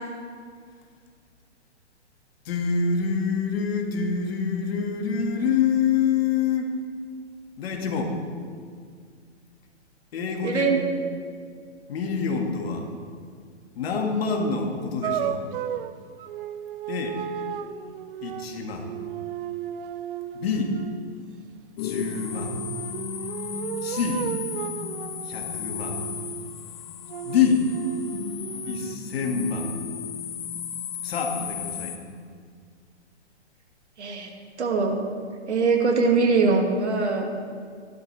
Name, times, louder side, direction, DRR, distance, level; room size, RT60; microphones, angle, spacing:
voice 1, 2.4-6.7 7.6-8.2 10.1-10.7 11.9-12.9 13.8-15.4 16.9-17.2 18.2-18.9 20.3-20.7 21.8-22.6 23.8-24.3 25.2-26.0 27.2-27.7 28.7-29.7 31.0-31.9, left 6 dB, 60° left, 2 dB, 2.1 m, -26 dB
voice 2, 10.4-10.8 34.0-34.3 34.6-35.1 35.5-37.3, right 4 dB, 75° right, 2 dB, 2.2 m, -22 dB
sound 1, 15.0-21.1 22.3-26.6 27.1-29.0, right 9 dB, 50° right, 0.6 m, -34 dB
sound 2, 21.8-32.0, left 8 dB, 40° left, 1.3 m, -34 dB
15.0 x 12.0 x 3.4 m, 2.1 s
hypercardioid pair, 130°, 35 cm